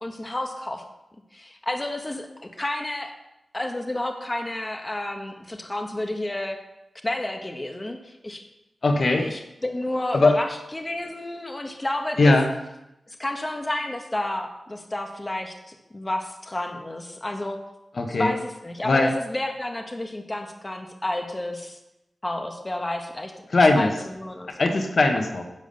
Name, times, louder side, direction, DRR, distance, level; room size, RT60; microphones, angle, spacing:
voice 1, 0.0-0.8 1.3-3.1 3.5-6.6 7.0-8.4 9.2-12.2 13.1-17.6 18.2-21.8 22.2-23.3 23.7-23.9 24.2-24.6, left 1 dB, 20° left, 4 dB, 1.3 m, -31 dB
voice 2, 8.8-9.3 10.1-10.4 12.2-12.5 17.9-18.3 18.8-19.1 23.5-23.9 24.5-25.4, left 2 dB, 55° left, 5 dB, 1.4 m, -19 dB
10.5 x 7.4 x 6.9 m, 0.91 s
wide cardioid pair, 90°, 0 cm